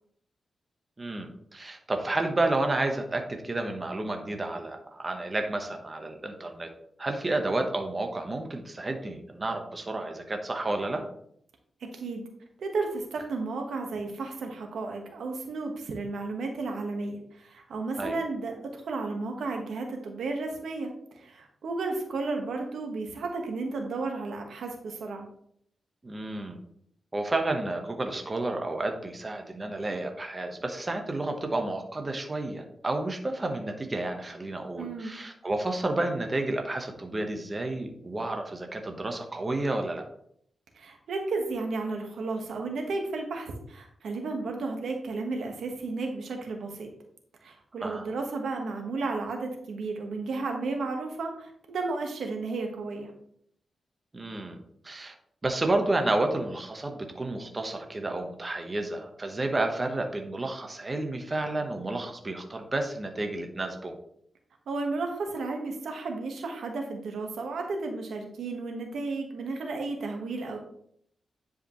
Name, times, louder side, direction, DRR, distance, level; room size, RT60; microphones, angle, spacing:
voice 1, 1.0-6.7 7.0-11.0 18.0-18.2 26.0-26.6 27.1-40.1 47.8-48.0 54.1-54.6 54.8-55.1 55.4-64.0, right 2 dB, 30° right, 4 dB, 1.1 m, -31 dB
voice 2, 11.9-12.2 12.6-20.9 21.2-25.3 34.8-35.2 40.7-46.9 47.4-53.1 64.7-70.6, right 3 dB, 80° right, 3 dB, 1.4 m, -33 dB
9.9 x 5.0 x 3.1 m, 0.68 s
cardioid pair, 75°, 0 cm